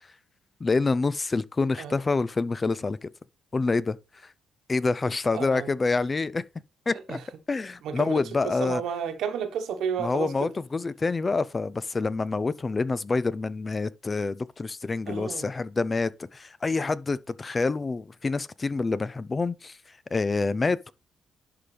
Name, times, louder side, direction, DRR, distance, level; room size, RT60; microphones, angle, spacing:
voice 1, 0.6-3.1 3.5-4.0 4.7-6.4 6.9-7.2 7.5-8.8 10.0-19.8 20.1-20.9, left 3 dB, 30° left, 0.4 m, -27 dB
voice 2, 5.3-5.7 7.1-7.2 7.8-10.5 15.1-15.5, right 7 dB, 80° right, 1.2 m, -32 dB
11.0 x 3.8 x 3.4 m
cardioid pair, 90°, 0 cm